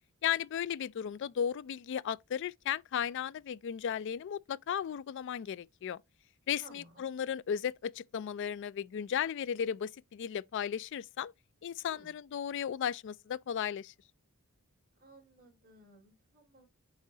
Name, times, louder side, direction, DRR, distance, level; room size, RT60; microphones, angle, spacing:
voice 1, 0.2-6.0 6.5-11.3 11.6-13.9, left 8 dB, 55° left, 0.3 m, -35 dB
voice 2, 6.6-7.1 11.9-12.1 15.0-16.7, right 1 dB, 40° right, 3.4 m, -58 dB
7.2 x 4.9 x 2.8 m
head